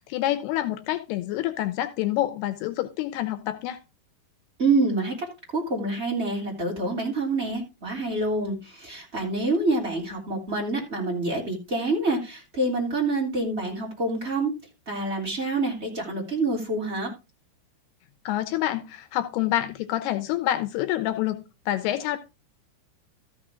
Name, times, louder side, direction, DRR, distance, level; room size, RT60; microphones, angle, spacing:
voice 1, 0.0-3.8 18.3-22.2, left 13 dB, 80° left, 2.7 m, -27 dB
voice 2, 4.6-14.5 14.9-17.1, right 2 dB, 15° right, 3.0 m, -27 dB
13.5 x 6.3 x 3.6 m
omnidirectional pair, 4.7 m